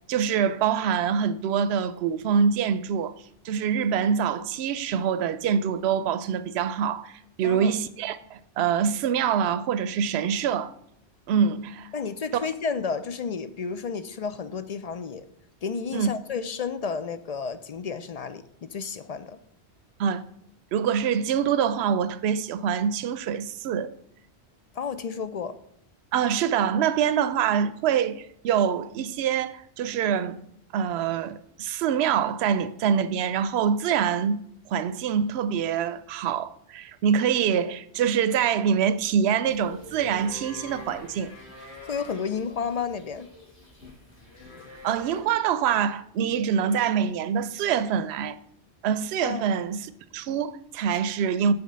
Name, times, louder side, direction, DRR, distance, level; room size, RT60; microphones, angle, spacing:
voice 1, 0.1-3.1 3.4-10.7 11.3-11.9 15.9-16.1 20.0-20.2 20.7-23.9 26.1-30.4 30.7-34.4 34.7-41.3 44.8-48.4 48.8-49.9 50.1-51.5, right 7 dB, 75° right, 0.8 m, -25 dB
voice 2, 7.4-7.7 11.9-15.2 15.6-19.4 24.8-25.6 41.8-43.3 49.2-49.5, left 5 dB, 50° left, 0.5 m, -31 dB
sound 1, 39.4-45.2, left 3 dB, 75° left, 3.6 m, -45 dB
7.9 x 4.9 x 6.6 m
omnidirectional pair, 1.1 m